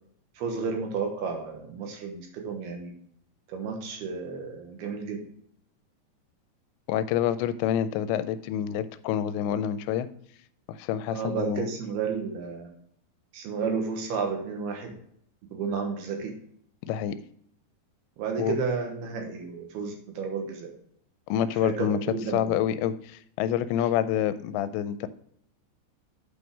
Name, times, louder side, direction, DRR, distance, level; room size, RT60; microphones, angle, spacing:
voice 1, 0.4-2.9 3.5-5.2 11.1-12.7 13.3-14.9 15.5-16.3 18.2-20.7 21.6-22.6, right 5 dB, 70° right, 3 dB, 3.0 m, -32 dB
voice 2, 6.9-10.1 10.7-11.7 16.9-17.2 18.4-18.6 21.3-22.0 22.3-25.1, left 10 dB, 85° left, 13 dB, 2.8 m, -27 dB
8.7 x 5.4 x 4.7 m, 0.67 s
omnidirectional pair, 5.1 m